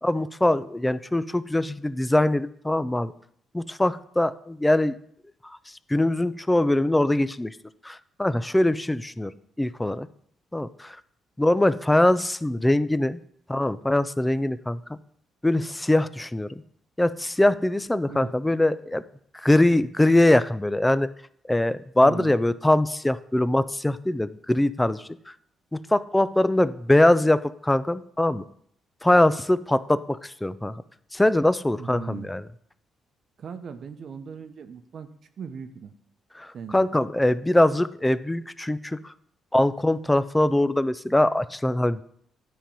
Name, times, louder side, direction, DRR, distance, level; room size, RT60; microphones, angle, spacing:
voice 1, 0.0-3.1 3.5-5.0 5.4-7.6 7.8-9.3 9.6-10.1 10.5-11.0 11.4-13.2 13.5-15.0 15.4-16.6 17.0-19.0 19.3-21.1 21.5-25.3 25.7-28.5 29.0-30.8 31.1-32.4 36.4-39.1 39.5-42.0, left 1 dB, 10° left, 15 dB, 0.4 m, -22 dB
voice 2, 22.0-22.4 31.8-32.3 33.4-35.1 35.4-35.9 36.5-36.9, right 6 dB, 55° right, 9 dB, 0.8 m, -38 dB
10.0 x 3.8 x 6.9 m, 0.68 s
cardioid pair, 90°, 0 cm